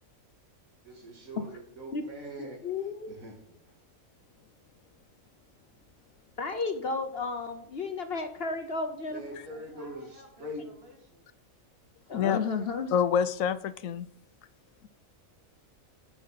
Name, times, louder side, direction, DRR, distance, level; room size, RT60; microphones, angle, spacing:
voice 1, 0.8-2.6 3.1-3.7 9.1-10.6, equal, 75° right, 1 dB, 2.9 m, -43 dB
voice 2, 2.6-3.1 6.4-9.2 12.1-12.9, left 4 dB, 50° left, 7 dB, 0.9 m, -33 dB
voice 3, 9.4-11.2, right 1 dB, 45° right, -1 dB, 3.2 m, -55 dB
voice 4, 12.9-14.1, left 8 dB, 75° left, 14 dB, 1.0 m, -27 dB
9.2 x 5.9 x 5.6 m, 0.71 s
omnidirectional pair, 1.5 m